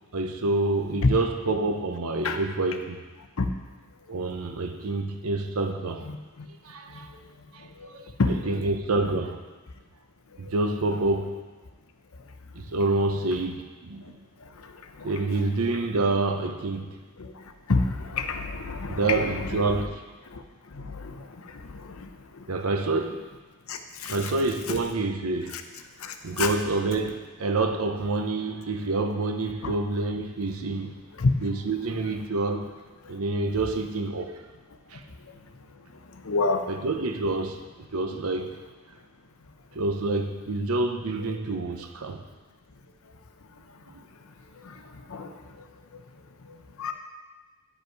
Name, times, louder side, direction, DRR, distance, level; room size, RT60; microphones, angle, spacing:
voice 1, 0.1-3.0 4.1-6.1 6.6-7.1 7.5-9.4 10.4-11.4 12.5-14.1 15.0-16.9 18.9-20.0 22.5-23.2 24.0-25.6 26.2-30.9 31.4-32.7 33.1-34.4 34.9-35.0 36.7-37.6 37.9-38.6 39.7-42.2, right 2 dB, 85° right, 6 dB, 0.8 m, -27 dB
voice 2, 8.2-8.6 17.2-17.3 17.7-19.6 20.7-21.1 23.7-24.3 24.7-24.8 25.5-25.6 26.0-26.5 29.6-29.7 31.2-31.3 36.2-36.6 41.3-41.4 45.1-45.3 46.8-46.9, left 3 dB, 75° left, 7 dB, 0.7 m, -27 dB
10.5 x 5.4 x 4.7 m, 1.3 s
head